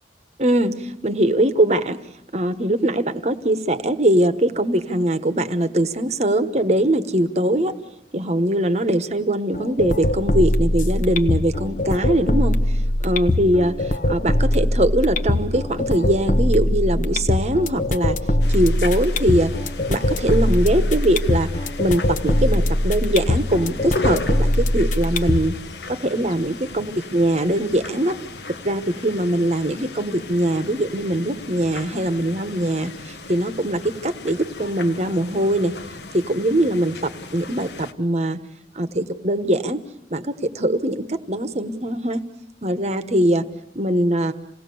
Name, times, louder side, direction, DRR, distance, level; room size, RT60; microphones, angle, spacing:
voice 1, 0.4-2.0 2.3-7.7 8.1-12.6 13.0-13.7 14.1-18.2 18.5-19.5 19.9-21.5 21.8-25.5 25.9-28.2 28.6-32.9 33.3-35.7 36.1-37.0 37.3-38.4 38.7-39.8 40.1-42.2 42.6-43.4 43.7-44.3, right 1 dB, 40° right, 11 dB, 1.2 m, -21 dB
sound 1, 9.5-25.5, left 1 dB, 45° left, 1.0 m, -22 dB
sound 2, 18.4-37.9, left 3 dB, 75° left, 1.2 m, -36 dB
28.0 x 18.0 x 7.0 m, 0.81 s
head